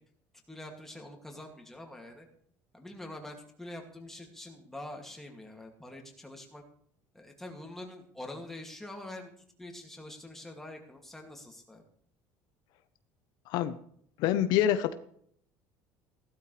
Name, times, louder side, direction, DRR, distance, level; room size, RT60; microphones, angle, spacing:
voice 1, 0.5-2.3 2.7-6.6 7.1-9.3 9.6-11.8, left 1 dB, 5° left, 1 dB, 2.4 m, -45 dB
voice 2, 13.5-13.8 14.2-14.9, left 11 dB, 70° left, 11 dB, 0.9 m, -26 dB
15.5 x 12.5 x 3.3 m, 0.64 s
cardioid pair, 135°, 8 cm